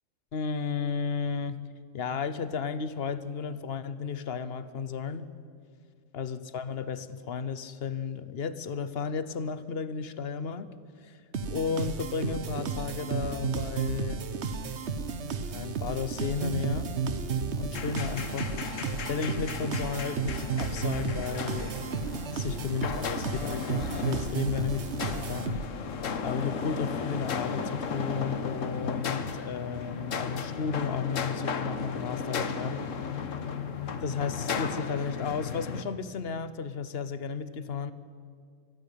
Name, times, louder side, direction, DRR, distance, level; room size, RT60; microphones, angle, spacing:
voice 1, 0.3-1.7 1.9-5.3 6.1-10.7 11.0-11.2 11.5-14.2 15.5-16.9 17.6-21.8 22.3-25.6 26.2-32.9 34.0-37.9, left 6 dB, 50° left, 14 dB, 1.1 m, -33 dB
sound 1, 11.3-25.9, right 5 dB, 60° right, 1.3 m, -33 dB
sound 2, 17.7-35.8, left 5 dB, 70° left, 1.5 m, -35 dB
24.0 x 15.0 x 8.5 m, 2.1 s
omnidirectional pair, 1.4 m